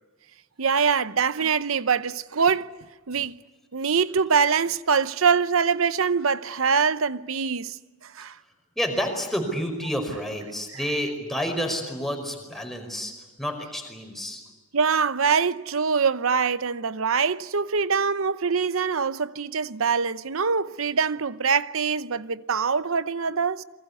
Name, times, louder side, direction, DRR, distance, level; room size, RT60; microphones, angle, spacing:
voice 1, 0.6-2.7 3.1-3.4 3.7-8.4 14.7-23.6, right 5 dB, 75° right, 0.8 m, -24 dB
voice 2, 8.8-13.1 13.4-14.4, equal, ahead, 5.2 m, -29 dB
28.5 x 23.5 x 8.3 m
head